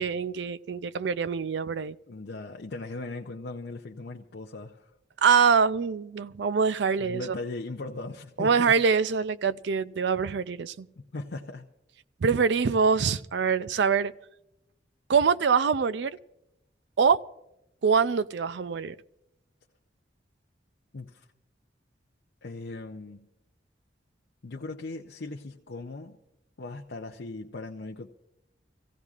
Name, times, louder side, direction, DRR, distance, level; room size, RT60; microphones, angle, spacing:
voice 1, 0.0-2.0 5.2-7.3 8.4-10.9 12.2-14.1 15.1-16.2 17.0-17.2 17.8-19.0, right 6 dB, 70° right, 0.4 m, -24 dB
voice 2, 2.1-4.9 7.0-8.8 11.1-11.7 20.9-21.3 22.4-23.3 24.4-26.2 26.6-28.1, left 2 dB, 65° left, 0.6 m, -38 dB
25.5 x 16.0 x 2.4 m
head